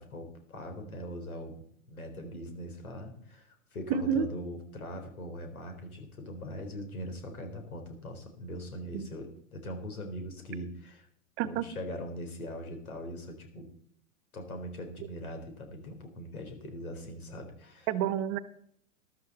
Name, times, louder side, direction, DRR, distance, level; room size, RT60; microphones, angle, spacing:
voice 1, 0.0-11.1 11.4-13.7 14.3-17.9, equal, 85° left, 5 dB, 4.0 m, -41 dB
voice 2, 3.9-4.3 8.9-9.1 11.4-11.6 17.9-18.4, right 8 dB, 40° right, 14 dB, 1.1 m, -29 dB
14.0 x 12.5 x 4.1 m, 0.65 s
hypercardioid pair, 110°, 42 cm